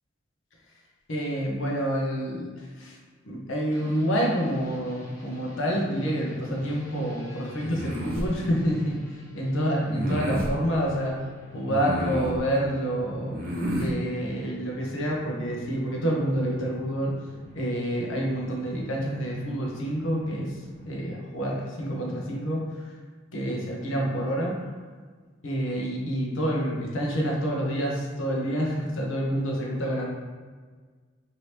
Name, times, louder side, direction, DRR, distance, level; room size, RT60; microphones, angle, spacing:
voice 1, 1.1-3.0 3.2-11.2 11.5-13.4 13.8-17.1 17.5-20.5 20.9-22.8 23.3-24.6 25.4-30.1, equal, 70° left, -2 dB, 0.7 m, -28 dB
sound 1, 3.7-21.0, right 2 dB, 15° left, 0.7 m, -48 dB
sound 2, 7.6-8.3 9.9-10.5 11.7-12.4 13.3-13.9, equal, 50° right, 0.7 m, -30 dB
2.8 x 2.8 x 3.2 m, 1.5 s
head